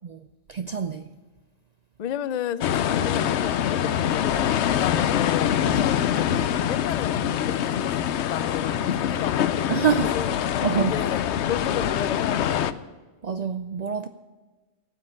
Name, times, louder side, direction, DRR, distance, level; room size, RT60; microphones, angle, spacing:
voice 1, 0.5-1.1 5.7-5.9 9.7-10.1 10.6-10.9 13.2-14.1, right 7 dB, 55° right, 10 dB, 0.5 m, -26 dB
voice 2, 2.0-10.4 10.7-12.7, left 9 dB, 50° left, 14 dB, 0.5 m, -33 dB
sound 1, 2.6-12.7, left 10 dB, 90° left, 0.9 m, -24 dB
12.5 x 8.8 x 8.7 m, 1.3 s
omnidirectional pair, 1.1 m